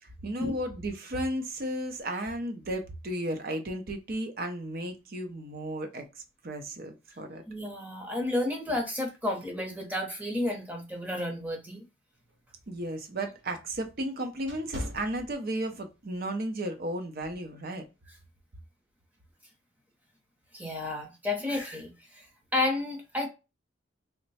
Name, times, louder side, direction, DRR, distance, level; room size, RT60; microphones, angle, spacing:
voice 1, 0.0-6.0 6.4-7.4 12.7-17.8, right 1 dB, 45° right, 0.6 m, -34 dB
voice 2, 7.5-11.8 20.5-22.2 22.5-23.3, left 2 dB, 10° right, 0.8 m, -31 dB
sound 1, 12.2-15.9 16.4-16.6 17.2-17.5, left 1 dB, 65° right, 1.0 m, -42 dB
3.0 x 2.2 x 4.1 m
head